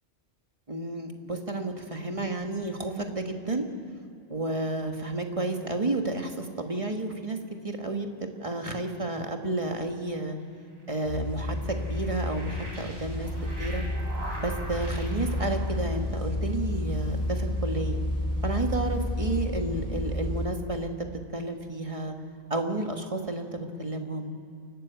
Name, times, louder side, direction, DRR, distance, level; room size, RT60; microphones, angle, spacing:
voice 1, 0.7-3.6 4.3-7.4 7.6-10.4 10.9-13.3 13.6-13.8 14.4-18.0 18.4-20.9 21.3-22.1 22.5-24.3, right 2 dB, 25° right, 4 dB, 1.5 m, -31 dB
sound 1, 10.6-16.3, right 1 dB, 55° right, 4.4 m, -43 dB
sound 2, 11.0-20.5, left 1 dB, 40° left, 2.8 m, -31 dB
28.0 x 12.5 x 8.1 m, 2.4 s
omnidirectional pair, 1.3 m